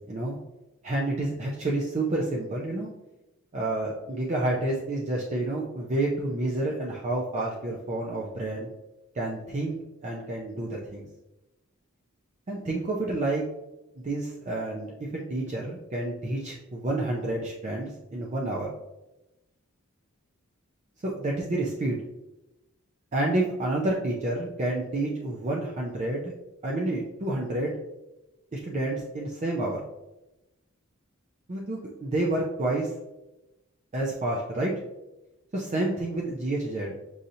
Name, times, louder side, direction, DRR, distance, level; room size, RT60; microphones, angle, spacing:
voice 1, 0.1-0.4 0.8-2.9 3.5-8.7 9.1-9.8 10.0-11.1 12.5-13.4 14.0-14.9 15.3-18.7 21.0-22.0 23.1-26.3 26.6-27.7 28.5-29.8 31.5-32.9 33.9-34.7 35.5-36.9, right 2 dB, 35° right, -3 dB, 0.5 m, -29 dB
6.2 x 2.7 x 2.7 m, 0.97 s
head